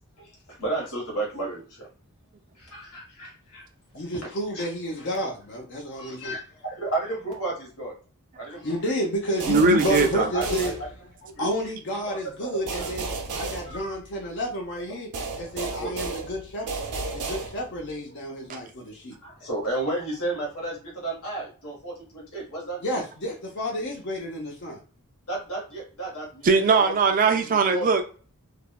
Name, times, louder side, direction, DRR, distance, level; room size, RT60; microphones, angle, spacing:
voice 1, 0.2-1.9 2.6-3.7 4.5-4.7 6.0-7.9 8.4-8.8 10.2-10.4 11.2-11.5 12.4-12.9 13.7-14.0 15.6-15.9 19.2-23.0 25.3-26.9 27.3-27.9, right 2 dB, 70° left, 1.3 m, -33 dB
voice 2, 3.9-6.4 8.6-10.7 11.4-15.1 15.4-16.8 17.1-19.2 22.8-24.8, equal, 55° left, 0.7 m, -30 dB
sound 1, 9.4-11.3 12.7-14.4 15.1-17.9, right 3 dB, 80° right, 0.7 m, -33 dB
voice 3, 9.5-10.3 18.5-18.6 26.4-28.0, right 4 dB, 35° right, 0.4 m, -20 dB
3.3 x 2.1 x 2.2 m
head